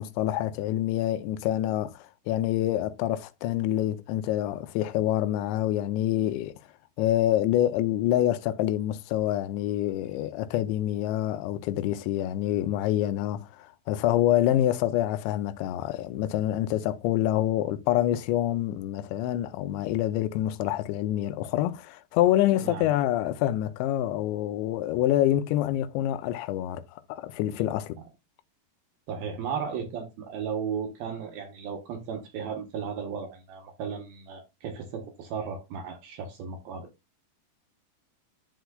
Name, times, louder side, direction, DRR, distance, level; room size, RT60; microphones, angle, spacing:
voice 1, 0.0-6.5 7.0-28.0, left 13 dB, 85° left, 2.9 m, -26 dB
voice 2, 22.5-22.9 29.1-36.9, right 6 dB, 70° right, 2.6 m, -35 dB
12.5 x 4.5 x 2.3 m
omnidirectional pair, 5.1 m